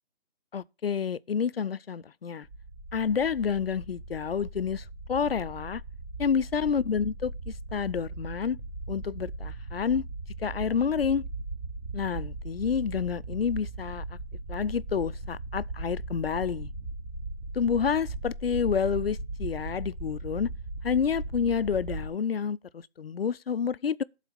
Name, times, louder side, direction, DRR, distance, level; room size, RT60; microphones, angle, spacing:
voice 1, 0.5-2.5 2.9-5.8 6.2-8.6 8.9-10.0 10.4-11.2 11.9-14.0 14.5-16.7 17.5-20.5 20.8-24.0, left 6 dB, 65° left, 0.5 m, -29 dB
sound 1, 2.4-22.1, right 2 dB, 15° right, 0.8 m, -38 dB
11.0 x 4.1 x 5.9 m
figure-of-eight pair, 145°, 32 cm